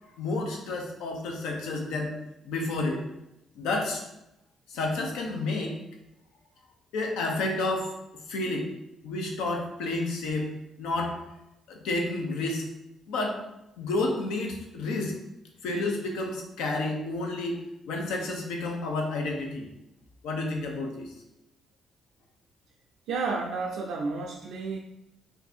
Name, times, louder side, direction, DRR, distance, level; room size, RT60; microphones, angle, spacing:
voice 1, 0.2-2.2 2.4-3.0 3.5-4.0 4.7-5.7 6.9-7.9 8.3-8.7 9.0-10.5 10.8-11.2 11.7-12.6 13.1-13.4 13.8-15.2 15.6-17.6 17.9-19.7 20.2-21.1, left 2 dB, 90° left, 2 dB, 0.6 m, -30 dB
voice 2, 23.1-24.8, right 4 dB, 85° right, -1 dB, 0.3 m, -31 dB
2.7 x 2.5 x 4.2 m, 0.88 s
cardioid pair, 90°, 0 cm